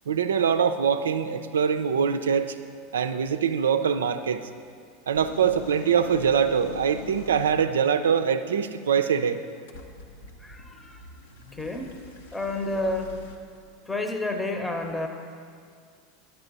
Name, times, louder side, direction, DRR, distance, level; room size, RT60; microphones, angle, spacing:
voice 1, 0.1-2.5 2.9-4.4 5.1-9.4, right 7 dB, 80° right, 10 dB, 0.4 m, -23 dB
sound 1, 5.1-7.7 9.7-13.4, left 4 dB, 70° left, 0.8 m, -43 dB
voice 2, 10.4-11.0 11.5-11.9 12.3-13.1 13.9-15.1, left 2 dB, 10° left, 5 dB, 0.8 m, -30 dB
9.7 x 8.0 x 4.0 m, 2.2 s
hypercardioid pair, 85°, 0 cm